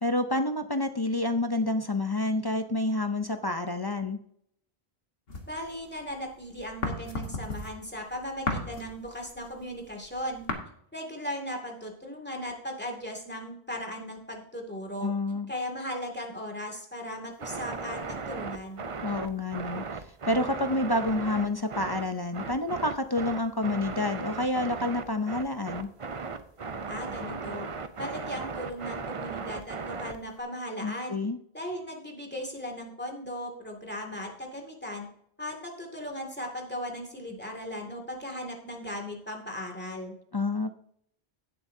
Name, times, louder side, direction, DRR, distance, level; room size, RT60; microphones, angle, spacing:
voice 1, 0.0-4.2 15.0-15.5 19.0-25.9 30.8-31.4 40.3-40.7, left 2 dB, 30° left, 8 dB, 0.5 m, -29 dB
sound 1, 5.3-6.2 6.5-10.5, left 2 dB, 65° left, 1.7 m, -34 dB
voice 2, 5.5-10.5 10.9-15.1 15.5-18.8 26.9-27.7 28.0-31.2 31.5-35.1 35.4-40.1, equal, 10° left, 1 dB, 2.2 m, -37 dB
sound 2, 17.4-30.4, right 4 dB, 35° right, 0.6 m, -37 dB
16.5 x 7.8 x 2.7 m, 0.69 s
omnidirectional pair, 1.0 m